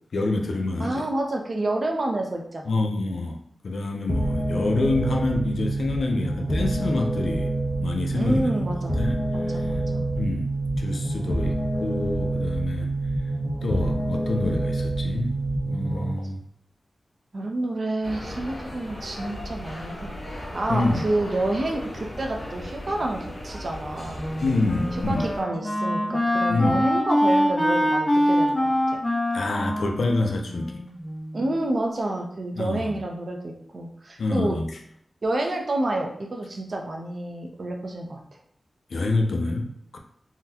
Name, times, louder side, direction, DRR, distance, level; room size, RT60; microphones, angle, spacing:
voice 1, 0.1-1.1 2.7-3.4 3.6-8.5 9.0-9.2 9.5-9.7 10.2-10.5 10.8-11.6 11.8-12.9 13.6-15.3 15.6-16.4 20.7-21.0 24.4-25.3 26.5-26.8 29.3-30.8 32.6-32.9 34.2-34.7 38.9-40.0, left 2 dB, 80° left, 3 dB, 0.5 m, -27 dB
voice 2, 0.8-2.7 8.1-9.0 9.3-10.1 17.3-20.1 20.5-24.3 25.1-29.0 31.3-34.6 35.2-38.4, right 1 dB, 55° right, 1 dB, 0.6 m, -29 dB
sound 1, 4.1-16.1, right 2 dB, 5° left, 0.6 m, -27 dB
sound 2, 18.0-25.4, equal, 60° left, 1.1 m, -37 dB
Wind instrument woodwind instrument, 24.1-31.3, equal, 30° left, 0.9 m, -24 dB
3.7 x 2.2 x 2.8 m, 0.69 s
wide cardioid pair, 85°, 0 cm